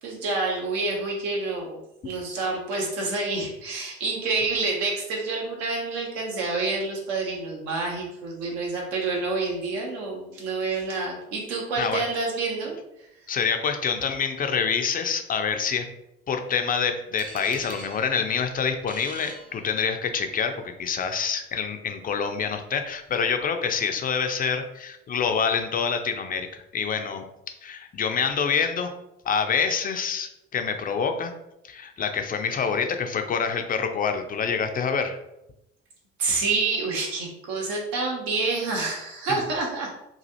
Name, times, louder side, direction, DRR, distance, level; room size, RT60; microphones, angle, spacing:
voice 1, 0.0-13.1 36.2-39.9, right 3 dB, 70° right, -1 dB, 0.9 m, -28 dB
voice 2, 13.3-15.9 16.3-27.2 27.6-28.9 29.3-31.3 31.6-35.2, left 6 dB, 25° left, 6 dB, 0.4 m, -26 dB
sound 1, 17.2-20.2, right 3 dB, 25° right, 0.5 m, -44 dB
3.1 x 2.4 x 2.7 m, 0.86 s
hypercardioid pair, 50°, 33 cm